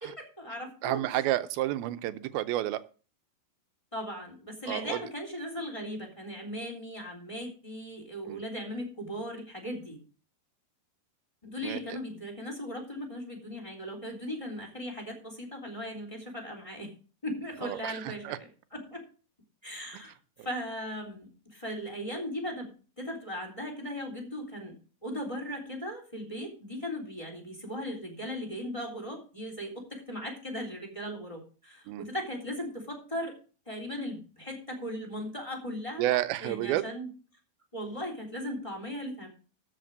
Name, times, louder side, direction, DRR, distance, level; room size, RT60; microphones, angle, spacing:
voice 1, 0.0-1.2 3.9-10.0 11.4-16.9 17.2-19.0 19.6-22.7 23.0-24.7 25.0-33.4 33.7-37.1 37.7-39.3, equal, 10° left, 1 dB, 3.1 m, -38 dB
voice 2, 0.8-2.8 4.7-5.0 8.3-8.4 11.6-12.0 17.6-18.4 19.9-20.0 31.9-32.1 36.0-36.9, right 15 dB, 85° right, 13 dB, 2.6 m, -30 dB
13.5 x 5.7 x 6.6 m, 0.37 s
omnidirectional pair, 4.3 m